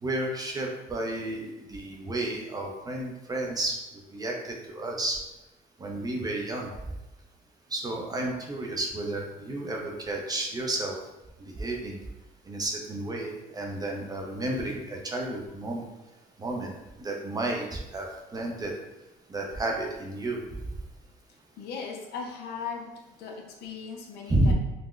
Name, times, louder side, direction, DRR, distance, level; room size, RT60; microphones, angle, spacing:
voice 1, 0.0-3.8 4.1-5.2 5.8-6.7 7.7-11.0 11.4-12.0 12.5-15.8 16.4-16.7 17.0-18.1 18.3-18.7 19.3-20.4 24.3-24.5, right 1 dB, 25° right, 0 dB, 0.5 m, -31 dB
voice 2, 21.6-24.5, left 5 dB, 75° left, 2 dB, 0.5 m, -38 dB
3.7 x 2.1 x 2.3 m, 1.0 s
cardioid pair, 110°, 17 cm